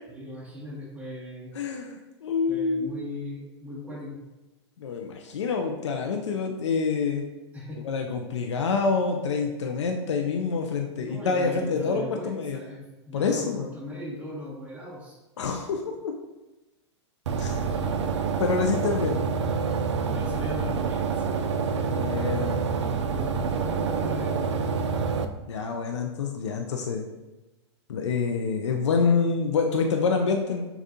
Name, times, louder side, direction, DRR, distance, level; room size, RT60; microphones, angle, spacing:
voice 1, 0.1-1.5 2.5-4.2 7.5-7.8 11.0-15.2 17.4-18.3 20.1-21.4 21.6-22.4 23.1-24.9, left 1 dB, 10° right, -6 dB, 1.5 m, -38 dB
voice 2, 1.5-3.0 4.8-7.2 7.8-12.6 13.1-13.7 15.4-16.1 17.4-17.7 18.4-19.2 21.9-22.6 25.5-27.1 27.9-30.6, left 5 dB, 80° left, 3 dB, 0.5 m, -27 dB
sound 1, 17.3-25.3, right 5 dB, 80° right, 0.4 m, -27 dB
6.7 x 2.4 x 2.7 m, 1.1 s
hypercardioid pair, 105°, 15 cm